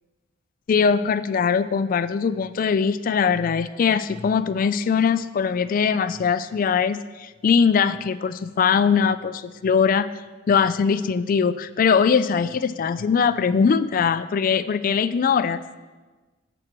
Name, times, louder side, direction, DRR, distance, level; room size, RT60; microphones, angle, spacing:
voice 1, 0.7-10.1 10.5-15.8, left 6 dB, 45° left, 14 dB, 0.3 m, -21 dB
12.5 x 7.8 x 3.0 m, 1.3 s
head